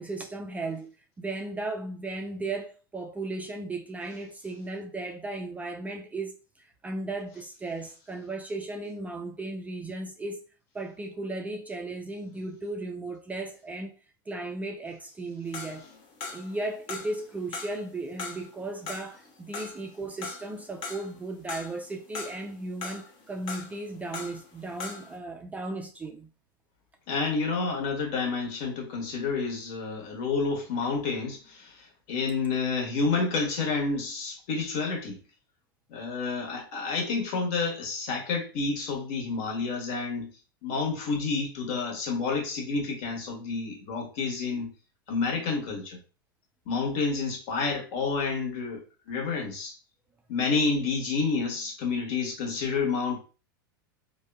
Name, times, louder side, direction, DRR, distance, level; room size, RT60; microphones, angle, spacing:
voice 1, 0.0-10.4 10.7-13.9 14.3-15.9 16.3-26.3, right 2 dB, 15° right, 0.3 m, -36 dB
sound 1, 15.5-16.6 16.9-17.8 18.2-21.2 21.5-22.5 22.8-24.5 24.7-25.2, left 4 dB, 40° left, 0.7 m, -39 dB
voice 2, 27.1-35.2 35.9-40.3 40.6-44.7 45.1-46.0 46.7-49.7 50.3-53.2, left 4 dB, 55° left, 1.1 m, -29 dB
3.3 x 2.2 x 2.3 m
hypercardioid pair, 95°, 12 cm